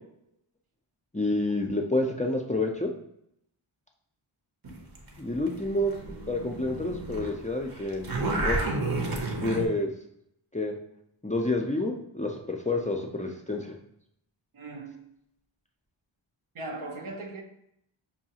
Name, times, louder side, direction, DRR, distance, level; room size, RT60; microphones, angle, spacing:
voice 1, 1.1-2.9 5.2-5.9 6.3-8.1 8.4-8.6 9.4-9.9 10.5-10.7 11.2-13.7, left 2 dB, 15° left, 0.4 m, -28 dB
sound 1, 4.6-7.3 7.6-9.7, right 2 dB, 45° right, 0.8 m, -31 dB
voice 2, 14.5-15.1 16.5-17.4, right 2 dB, 80° right, 0.7 m, -38 dB
5.4 x 2.3 x 2.8 m
wide cardioid pair, 50°, 49 cm